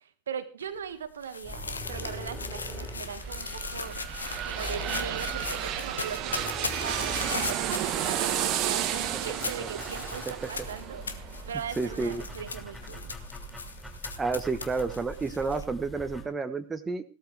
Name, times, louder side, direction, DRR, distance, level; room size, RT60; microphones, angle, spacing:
voice 1, 0.0-4.1 4.4-13.0, right 7 dB, 65° right, 10 dB, 1.5 m, -39 dB
sound 1, 0.6-15.6, left 4 dB, 75° left, 1.3 m, -39 dB
sound 2, 1.4-16.2, equal, 5° left, 4.7 m, -42 dB
sound 3, 3.0-12.7 13.1-13.2, right 11 dB, 35° right, 1.3 m, -33 dB
voice 2, 11.8-12.2 14.2-17.0, right 4 dB, 15° right, 7 dB, 1.2 m, -30 dB
17.0 x 13.0 x 3.4 m, 0.34 s
figure-of-eight pair, 90°, 0 cm